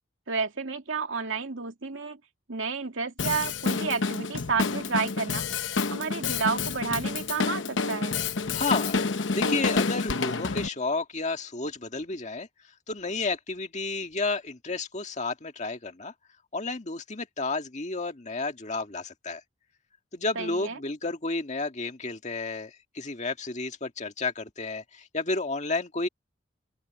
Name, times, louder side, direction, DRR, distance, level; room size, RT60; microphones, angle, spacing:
voice 1, 0.3-2.2 2.5-5.4 5.9-8.2 20.4-20.8, right 5 dB, 85° right, 2.5 m, -31 dB
Drum kit, 3.2-10.7, left 4 dB, 70° left, 0.9 m, -28 dB
voice 2, 8.5-9.0 9.3-12.5 12.9-16.1 16.5-19.4 20.1-26.1, left 3 dB, 40° left, 1.8 m, -31 dB
open air
head